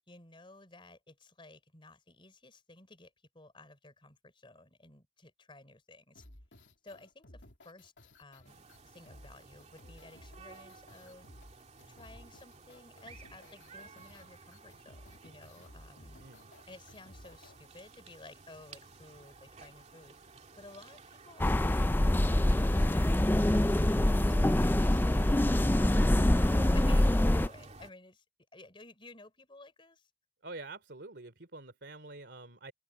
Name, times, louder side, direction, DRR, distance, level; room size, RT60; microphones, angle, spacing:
voice 1, 0.1-6.2 6.8-7.9 8.2-11.3 11.9-16.2 16.7-20.2 20.6-26.2 26.7-28.2 28.5-30.1, left 2 dB, 30° left, 3.8 m, -55 dB
sound 1, 6.2-17.6, left 1 dB, 90° left, 3.0 m, -56 dB
sound 2, 8.4-27.9, right 3 dB, 40° right, 2.8 m, -54 dB
voice 2, 16.1-16.5 26.8-27.0 30.4-32.7, right 3 dB, 70° right, 3.3 m, -47 dB
sound 3, 21.4-27.5, left 1 dB, 10° left, 0.4 m, -25 dB
head